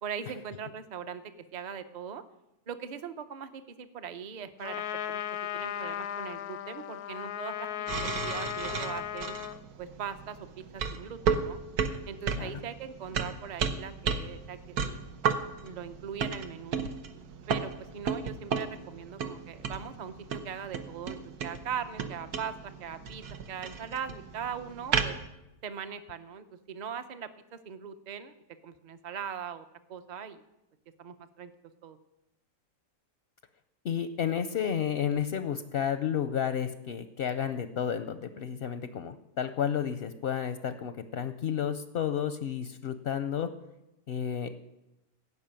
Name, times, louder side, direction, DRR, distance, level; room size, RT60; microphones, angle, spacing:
voice 1, 0.0-1.2 1.5-2.2 2.7-5.2 5.5-9.4 9.8-10.4 10.7-11.6 12.1-14.6 14.8-15.0 15.6-16.9 17.5-23.2 23.5-25.2 25.6-28.4 28.6-30.4 31.0-31.5 31.8-32.0, right 7 dB, 40° right, 10 dB, 0.7 m, -40 dB
Trumpet, 4.6-9.6, left 11 dB, 85° left, 1.2 m, -36 dB
sound 1, 7.9-25.3, right 6 dB, 85° right, 1.4 m, -34 dB
voice 2, 33.8-43.5 44.1-44.6, left 8 dB, 55° left, 10 dB, 0.7 m, -31 dB
17.0 x 6.2 x 8.9 m, 0.91 s
omnidirectional pair, 1.6 m